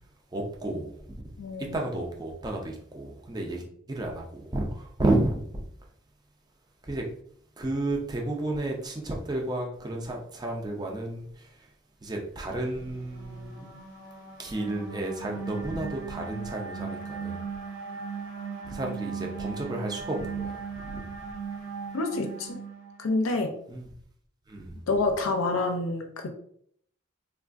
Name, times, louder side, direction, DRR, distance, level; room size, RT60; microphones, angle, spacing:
voice 1, 0.3-1.0 1.7-5.6 6.9-7.0 7.6-11.5 12.0-13.8 14.4-17.4 18.6-21.0 23.7-23.9 24.5-24.8, right 2 dB, 20° right, 1 dB, 0.4 m, -32 dB
voice 2, 1.4-1.8 21.9-22.6 23.0-23.5 24.9-26.3, left 3 dB, 80° left, 5 dB, 0.5 m, -27 dB
sound 1, 12.7-23.3, right 5 dB, 65° right, 0.6 m, -38 dB
3.3 x 2.3 x 2.4 m, 0.64 s
head